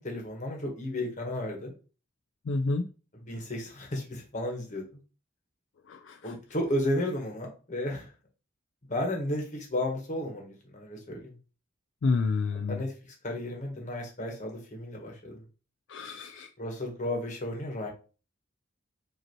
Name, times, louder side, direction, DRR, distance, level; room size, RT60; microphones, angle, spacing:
voice 1, 0.0-1.7 3.1-4.8 6.2-8.1 8.9-11.4 12.7-12.9 13.2-15.4 16.6-17.9, left 1 dB, 40° left, 1 dB, 1.3 m, -33 dB
voice 2, 2.5-2.9 5.9-6.3 12.0-12.8 15.9-16.5, left 3 dB, 65° left, 5 dB, 0.4 m, -29 dB
5.1 x 2.8 x 3.0 m, 0.35 s
head